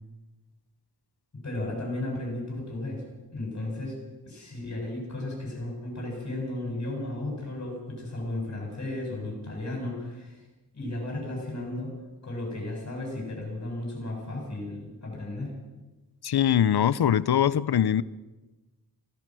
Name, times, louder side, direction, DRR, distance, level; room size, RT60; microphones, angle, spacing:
voice 1, 1.4-3.0 3.3-4.0 4.2-10.5 10.7-11.9 12.2-15.5, left 1 dB, 40° left, -2 dB, 7.8 m, -34 dB
voice 2, 16.2-18.0, left 9 dB, 75° left, 17 dB, 0.8 m, -22 dB
26.0 x 17.0 x 6.3 m, 1.1 s
wide cardioid pair, 155°, 39 cm